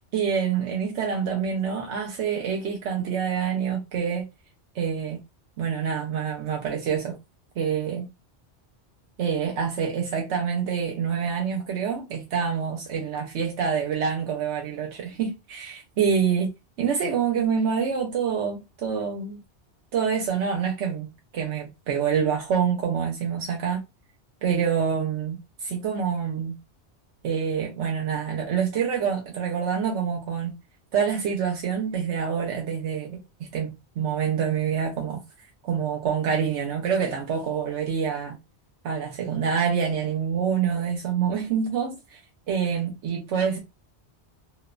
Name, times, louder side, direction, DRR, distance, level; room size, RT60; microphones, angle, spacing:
voice 1, 0.1-4.2 4.7-5.2 5.6-7.2 7.6-8.0 9.2-16.5 16.8-19.4 19.9-23.8 24.4-25.4 25.6-26.6 27.2-30.6 30.9-35.2 35.6-38.4 38.8-42.2 42.5-43.6, right 7 dB, 80° right, 1.0 m, -26 dB
3.0 x 2.0 x 2.4 m
omnidirectional pair, 1.2 m